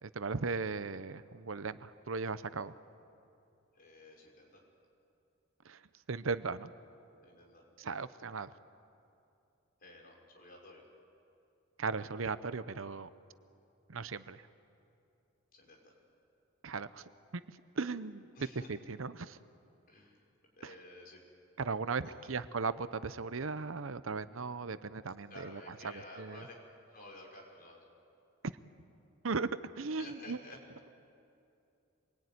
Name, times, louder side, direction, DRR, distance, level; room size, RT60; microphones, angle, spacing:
voice 1, 0.0-2.8 5.6-5.8 6.1-6.7 7.8-8.5 11.8-13.1 13.9-14.4 16.6-19.4 20.6-20.7 21.6-26.4 29.2-29.5 29.8-30.4, right 4 dB, 75° right, 13 dB, 0.8 m, -37 dB
voice 2, 3.7-4.6 7.2-7.6 9.8-10.9 15.5-15.9 18.4-18.7 19.9-20.2 20.6-21.2 22.0-22.4 25.3-26.5 26.9-27.8 30.0-30.6, left 2 dB, 45° left, -1 dB, 5.9 m, -52 dB
26.5 x 22.0 x 9.6 m, 2.7 s
head